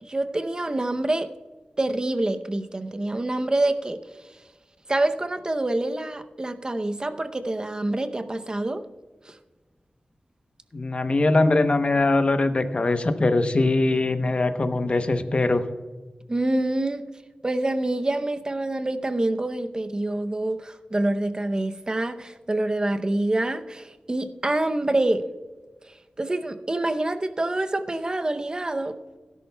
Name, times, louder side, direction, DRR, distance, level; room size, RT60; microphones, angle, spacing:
voice 1, 0.0-1.3 1.8-4.0 4.9-8.8 9.3-9.4 16.3-17.1 17.4-25.2 26.2-28.9, right 2 dB, 30° right, 9 dB, 0.7 m, -26 dB
voice 2, 10.7-15.6, left 2 dB, 45° left, 9 dB, 0.8 m, -22 dB
17.0 x 11.0 x 2.3 m, 1.3 s
wide cardioid pair, 105°, 3 cm